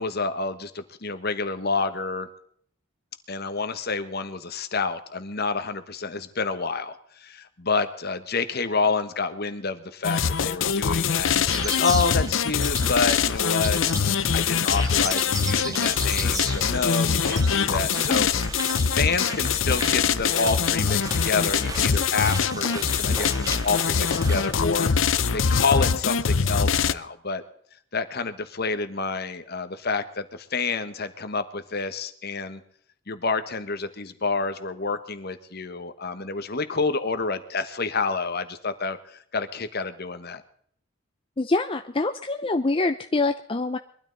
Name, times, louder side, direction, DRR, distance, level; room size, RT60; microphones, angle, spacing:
voice 1, 0.0-2.3 3.3-13.8 14.3-18.3 18.9-27.4 27.9-32.6 33.1-40.4, left 4 dB, 50° left, 10 dB, 1.3 m, -28 dB
sound 1, 10.0-26.9, left 6 dB, 70° left, 0.7 m, -23 dB
sound 2, 11.5-24.5, right 3 dB, 20° right, 1.5 m, -36 dB
sound 3, 12.3-26.0, right 2 dB, 80° right, 1.9 m, -43 dB
voice 2, 41.4-43.8, left 2 dB, 25° left, 8 dB, 0.6 m, -25 dB
22.0 x 13.0 x 4.0 m, 0.63 s
head